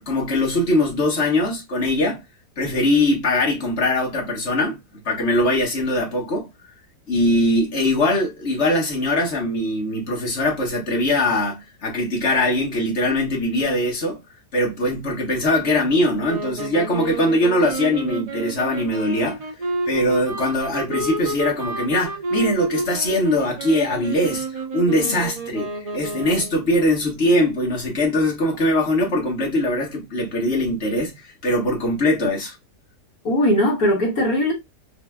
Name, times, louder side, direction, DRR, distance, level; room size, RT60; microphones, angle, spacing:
voice 1, 0.0-2.2 2.6-4.8 5.0-6.5 7.1-14.2 14.5-19.4 19.9-32.5, left 1 dB, 45° left, 1.6 m, -21 dB
sound 1, 16.2-26.7, right 2 dB, 80° right, 0.3 m, -30 dB
voice 2, 33.2-34.5, left 1 dB, 60° left, 2.0 m, -20 dB
4.6 x 2.8 x 2.3 m
omnidirectional pair, 1.8 m